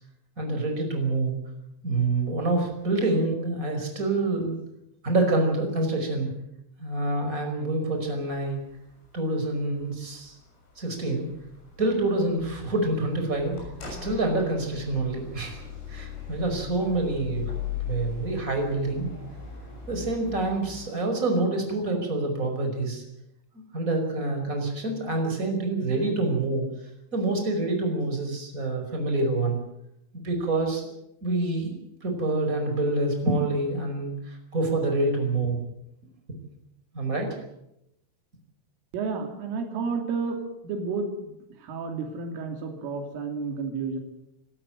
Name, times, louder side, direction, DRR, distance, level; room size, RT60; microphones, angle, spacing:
voice 1, 0.4-1.4 1.8-4.6 5.0-6.3 6.8-8.6 9.1-10.3 10.8-11.3 11.8-13.6 13.9-15.6 15.9-17.5 17.8-19.1 19.9-23.0 23.7-26.6 27.1-29.6 30.1-30.9 31.2-35.6 36.9-37.4, right 2 dB, 15° right, 4 dB, 5.0 m, -27 dB
sound 1, 8.0-20.9, left 7 dB, 85° left, 9.2 m, -40 dB
voice 2, 38.9-41.4 41.6-44.0, right 4 dB, 85° right, 4 dB, 5.3 m, -31 dB
27.0 x 13.0 x 9.1 m, 0.82 s
omnidirectional pair, 5.7 m